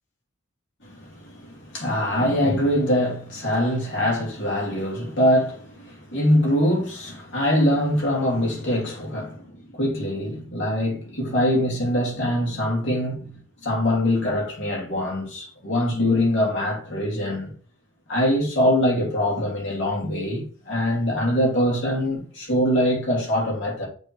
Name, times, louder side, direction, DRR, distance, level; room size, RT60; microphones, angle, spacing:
voice 1, 0.8-9.4 9.7-13.3 13.6-17.5 18.1-23.9, left 1 dB, 55° left, 2.5 m, -23 dB
6.9 x 3.6 x 4.5 m
head